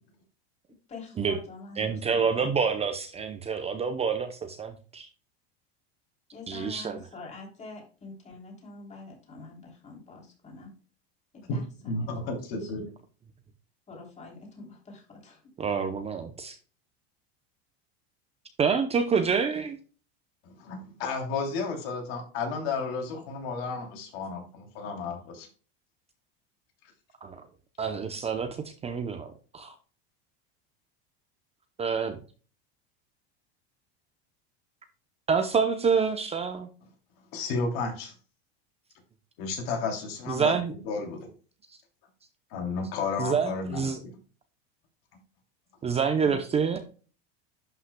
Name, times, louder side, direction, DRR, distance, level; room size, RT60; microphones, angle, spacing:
voice 1, 0.9-2.7 6.3-10.7 11.3-12.7 13.9-15.4, left 3 dB, 20° left, 0 dB, 3.1 m, -46 dB
voice 2, 1.8-5.1 6.5-7.0 15.6-16.6 18.6-19.8 27.2-27.5 27.8-29.7 31.8-32.2 35.3-36.7 40.3-40.7 41.7-41.8 43.2-44.0 45.8-46.8, right 6 dB, 20° right, 8 dB, 0.7 m, -27 dB
voice 3, 11.5-12.9 20.4-25.5 37.3-38.1 39.4-41.3 42.5-44.1, left 4 dB, 65° left, 2 dB, 3.0 m, -32 dB
11.0 x 5.7 x 2.2 m, 0.37 s
supercardioid pair, 140°, 32 cm